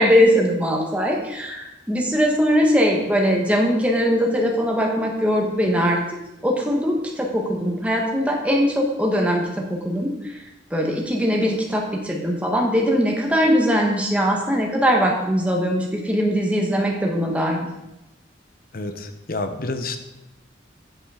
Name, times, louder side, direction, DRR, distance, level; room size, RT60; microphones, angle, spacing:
voice 1, 0.0-6.2 6.4-10.4 10.7-17.7, equal, 5° right, 0 dB, 1.5 m, -21 dB
voice 2, 18.7-20.0, left 2 dB, 50° left, 8 dB, 0.9 m, -29 dB
8.8 x 7.8 x 5.0 m, 0.96 s
head